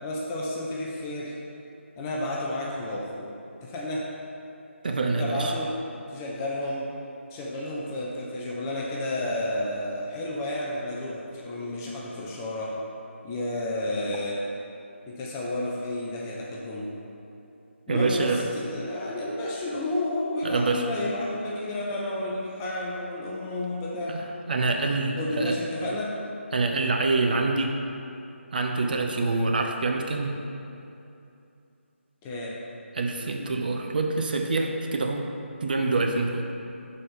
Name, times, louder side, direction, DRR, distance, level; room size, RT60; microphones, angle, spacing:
voice 1, 0.0-1.3 2.0-3.3 3.6-4.1 5.2-5.8 6.1-6.9 7.3-12.8 13.2-14.4 15.1-16.9 17.9-24.2 25.2-26.2 32.2-32.6, left 1 dB, 10° left, -4 dB, 0.5 m, -31 dB
voice 2, 4.8-5.5 17.9-18.4 20.4-20.8 24.1-25.6 26.5-27.8 28.5-30.4 32.9-36.5, right 3 dB, 40° right, 2 dB, 0.6 m, -26 dB
11.0 x 4.3 x 3.7 m, 2.7 s
figure-of-eight pair, 155°, 7 cm